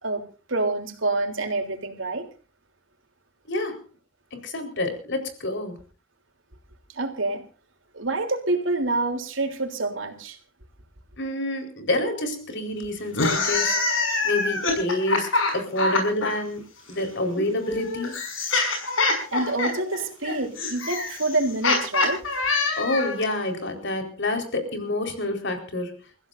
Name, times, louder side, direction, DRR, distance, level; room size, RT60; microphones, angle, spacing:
voice 1, 0.5-2.3 7.0-7.4 7.9-10.4 19.3-22.2, right 2 dB, 70° right, 5 dB, 3.4 m, -27 dB
voice 2, 3.5-3.8 4.4-5.8 11.2-14.0 14.2-15.3 15.5-16.6 16.9-18.1 22.8-25.9, left 1 dB, 65° left, 5 dB, 4.4 m, -28 dB
sound 1, 13.1-16.3 17.4-23.2, left 3 dB, 85° left, 6.1 m, -25 dB
30.0 x 15.0 x 2.6 m, 0.36 s
head